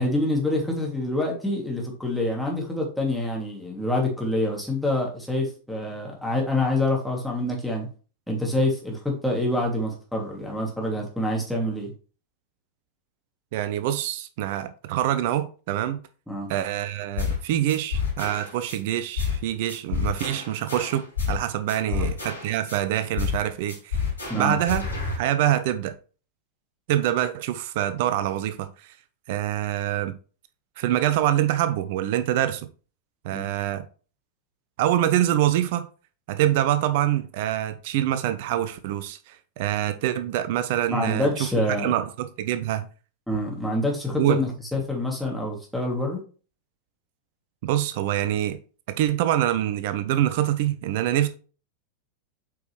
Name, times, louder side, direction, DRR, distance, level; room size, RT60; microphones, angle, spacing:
voice 1, 0.0-7.9 8.3-11.9 16.3-16.5 21.9-22.1 24.3-24.6 33.3-33.5 40.9-41.9 43.3-46.2, left 1 dB, ahead, 2.5 m, -26 dB
voice 2, 13.5-16.0 16.5-24.1 24.3-24.8 25.1-26.0 26.9-29.0 29.3-30.1 30.8-32.7 33.2-33.8 34.8-35.9 36.3-41.3 41.8-42.9 44.2-44.4 47.6-48.6 48.9-51.3, right 12 dB, 50° right, 0.6 m, -25 dB
sound 1, 17.2-17.4 17.7-18.8 19.2-19.4 19.7-21.4 21.7-22.8 23.2-23.4 23.7-25.2, left 5 dB, 75° left, 4.1 m, -28 dB
7.9 x 5.2 x 3.2 m
figure-of-eight pair, 90°, 0 cm